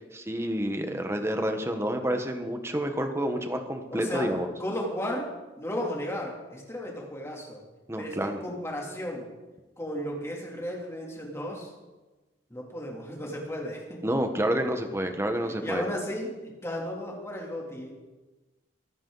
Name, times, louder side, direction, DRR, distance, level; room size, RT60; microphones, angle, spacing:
voice 1, 0.1-4.5 7.9-8.4 14.0-15.9, right 1 dB, 15° right, 6 dB, 1.3 m, -29 dB
voice 2, 3.9-4.3 4.6-5.3 5.6-7.6 8.0-9.3 9.8-11.7 12.5-14.0 15.4-17.9, equal, 15° left, -2 dB, 3.1 m, -34 dB
24.0 x 10.0 x 4.1 m, 1.2 s
head